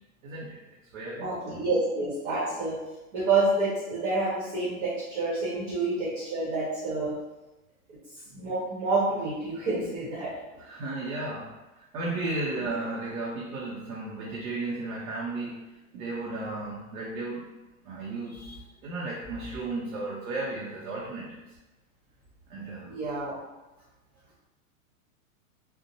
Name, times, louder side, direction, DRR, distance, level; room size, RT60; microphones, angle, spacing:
voice 1, 0.2-0.6 0.9-1.3 10.6-11.5 11.8-15.6 15.9-17.5 17.8-18.4 18.8-21.4 22.5-22.9, right 2 dB, 70° right, -4 dB, 0.7 m, -34 dB
voice 2, 1.2-2.8 3.1-7.2 8.3-10.3 12.6-12.7 22.5-22.6 22.9-23.3, right 3 dB, 40° right, -8 dB, 1.0 m, -28 dB
2.7 x 2.1 x 2.7 m, 1.0 s
supercardioid pair, 155°, 44 cm